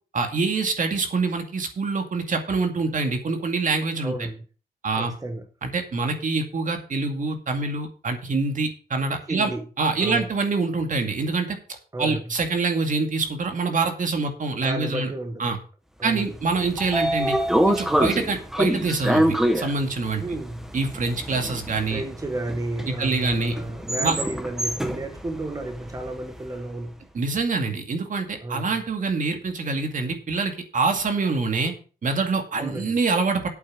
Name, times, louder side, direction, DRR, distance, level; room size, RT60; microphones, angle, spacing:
voice 1, 0.1-4.1 4.8-5.1 5.6-9.5 9.8-11.6 12.0-15.1 15.4-15.6 16.0-17.4 17.7-20.2 20.7-22.0 22.9-23.5 24.0-24.1 27.1-31.7 32.0-33.5, right 4 dB, 55° right, 2.3 m, -25 dB
voice 2, 4.0-4.4 5.0-5.4 9.3-9.7 10.0-10.3 11.9-12.3 14.6-15.4 16.0-16.4 20.2-20.7 21.9-27.0 28.4-28.8 32.6-33.0, right 2 dB, 20° right, 1.3 m, -32 dB
Train / Sliding door, 16.3-26.5, equal, 5° right, 1.2 m, -26 dB
8.4 x 8.3 x 6.2 m
wide cardioid pair, 120°, 16 cm